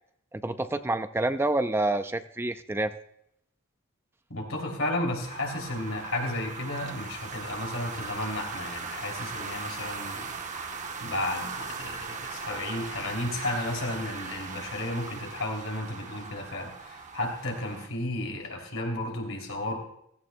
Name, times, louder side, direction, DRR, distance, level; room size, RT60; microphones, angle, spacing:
voice 1, 0.3-2.9, right 2 dB, 10° right, 10 dB, 0.4 m, -28 dB
voice 2, 4.3-10.3 11.0-19.8, left 1 dB, 80° left, 2 dB, 3.0 m, -33 dB
sound 1, 5.2-17.9, right 4 dB, 35° right, 1.0 m, -39 dB
16.0 x 15.5 x 2.2 m, 0.74 s
head